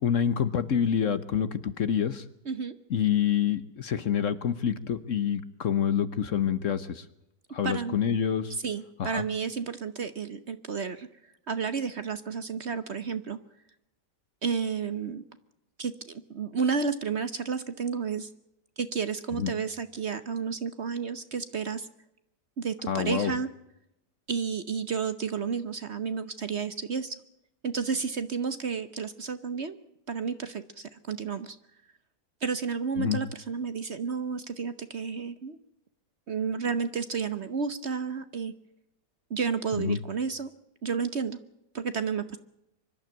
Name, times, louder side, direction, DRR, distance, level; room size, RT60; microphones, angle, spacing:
voice 1, 0.0-2.2 2.9-7.0 7.5-8.5 9.0-9.2 19.3-19.5 22.9-23.3 33.0-33.2 39.8-40.0, left 8 dB, 55° left, 14 dB, 1.1 m, -27 dB
voice 2, 2.4-2.8 7.6-8.0 8.5-11.1 11.5-13.4 14.4-15.2 15.8-18.3 18.8-21.9 22.6-23.5 24.3-27.2 27.6-29.8 30.1-31.6 32.4-35.6 36.3-38.5 39.3-40.5 40.8-41.4 41.7-42.4, right 5 dB, 45° right, 12 dB, 1.0 m, -31 dB
24.5 x 12.0 x 8.9 m, 0.84 s
omnidirectional pair, 1.8 m